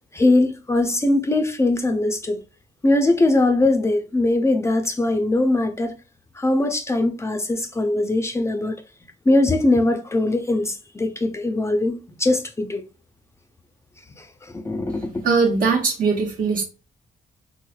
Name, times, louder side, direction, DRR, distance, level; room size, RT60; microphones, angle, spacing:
voice 1, 0.1-2.4 2.8-5.9 6.4-8.8 9.3-12.8 14.2-15.3, left 2 dB, 20° left, 0.4 m, -21 dB
voice 2, 15.2-16.6, right 4 dB, 65° right, 1.0 m, -20 dB
3.4 x 3.1 x 2.2 m
cardioid pair, 100°, 15 cm